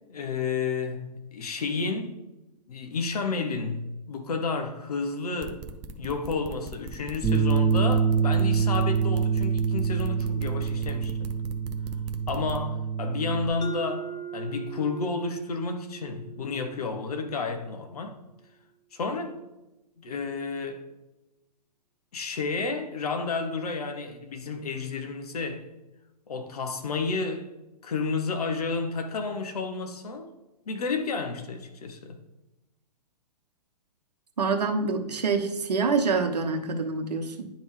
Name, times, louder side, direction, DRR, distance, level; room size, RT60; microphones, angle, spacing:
voice 1, 0.1-2.2 2.7-5.6 6.0-11.3 12.3-18.2 18.9-19.4 20.0-20.9 22.1-25.7 26.3-27.5 27.8-30.3 30.7-32.2, left 4 dB, 65° left, 1.0 m, -31 dB
sound 1, 5.4-12.6, right 3 dB, 25° right, 0.5 m, -40 dB
Bass guitar, 7.2-13.5, right 6 dB, 5° left, 1.6 m, -25 dB
Mallet percussion, 13.6-18.2, right 6 dB, 90° left, 0.6 m, -41 dB
voice 2, 34.4-37.5, right 4 dB, 75° right, 0.9 m, -26 dB
10.5 x 3.5 x 3.2 m
figure-of-eight pair, 120°, 21 cm